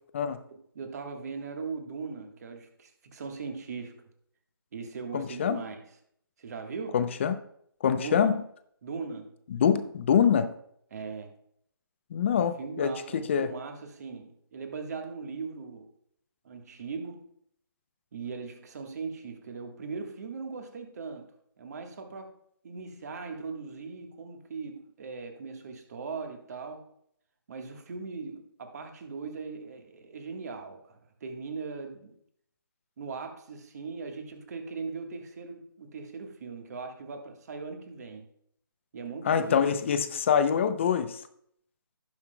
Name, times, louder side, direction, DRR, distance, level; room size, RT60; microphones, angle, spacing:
voice 1, 0.5-4.0 4.7-5.8 6.4-7.0 7.9-8.3 8.8-9.3 10.9-11.3 12.3-15.9 16.4-17.3 18.1-21.3 21.6-22.3 22.6-26.9 27.5-32.2 33.0-38.3 38.9-39.6, right 4 dB, 45° right, 5 dB, 1.4 m, -39 dB
voice 2, 5.1-5.6 6.9-7.4 7.8-8.3 9.5-10.5 12.1-13.5 39.2-41.2, left 7 dB, 30° left, 11 dB, 0.6 m, -25 dB
17.0 x 5.6 x 2.2 m, 0.68 s
figure-of-eight pair, 155°, 13 cm